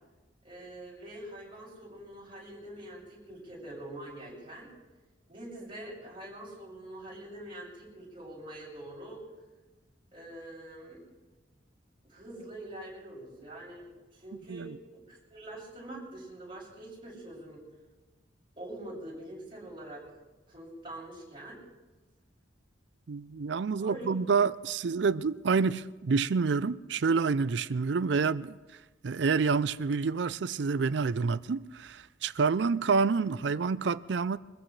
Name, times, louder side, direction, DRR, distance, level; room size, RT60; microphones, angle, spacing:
voice 1, 0.4-4.7 5.3-9.2 10.1-11.0 12.1-17.6 18.6-20.0 20.5-21.6 23.8-24.1, right 1 dB, 25° right, 6.7 m, -45 dB
voice 2, 23.1-28.6 29.0-34.4, right 5 dB, 65° right, 0.4 m, -28 dB
23.5 x 15.0 x 3.3 m
head